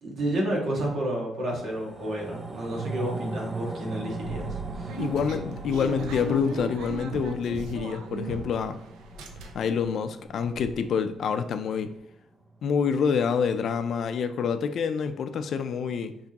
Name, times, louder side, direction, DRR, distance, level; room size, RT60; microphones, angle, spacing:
voice 1, 0.0-5.0, right 1 dB, 60° right, 1.6 m, -31 dB
sound 1, 1.5-12.1 12.5-12.6, right 2 dB, 30° right, 0.7 m, -39 dB
sound 2, 4.2-8.7 9.0-9.8 10.2-10.3 10.5-10.7, right 3 dB, 90° right, 0.5 m, -37 dB
voice 2, 5.0-8.8 9.5-11.9 12.6-16.2, left 6 dB, 65° left, 0.4 m, -27 dB
4.7 x 3.5 x 2.9 m
cardioid pair, 90°, 0 cm